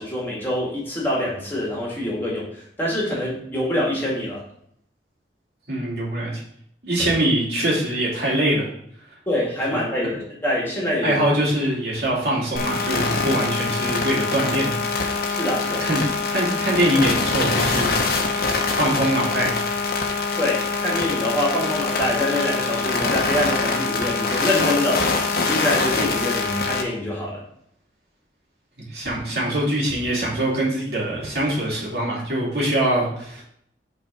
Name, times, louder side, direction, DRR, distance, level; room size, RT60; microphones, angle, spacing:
voice 1, 0.0-4.4 9.3-11.2 15.3-15.9 20.4-27.4, left 1 dB, 10° left, -5 dB, 2.1 m, -25 dB
voice 2, 5.7-6.3 6.8-8.7 9.7-9.8 11.0-14.8 15.8-16.0 16.3-18.0 18.3-19.6 28.9-33.4, right 1 dB, 65° right, -5 dB, 2.7 m, -23 dB
sound 1, 12.6-26.8, left 4 dB, 55° left, 1.1 m, -24 dB
6.0 x 4.2 x 5.8 m, 0.69 s
head